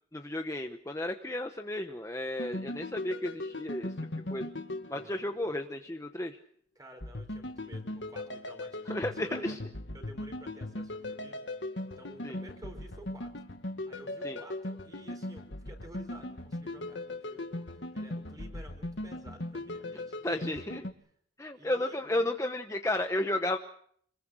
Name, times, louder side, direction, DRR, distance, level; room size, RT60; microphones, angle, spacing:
voice 1, 0.1-3.9 4.3-4.5 4.9-6.4 8.9-9.6 12.2-12.4 14.2-14.4 20.2-20.8 21.4-23.6, left 1 dB, 15° left, 5 dB, 0.9 m, -33 dB
sound 1, 2.4-5.7 7.0-20.9, left 1 dB, 80° left, 1.9 m, -39 dB
voice 2, 4.9-5.2 6.7-9.6 9.9-11.7 12.0-13.3 13.9-20.5 21.5-22.0, right 1 dB, 20° right, 5 dB, 4.8 m, -52 dB
26.0 x 21.0 x 6.5 m, 0.65 s
head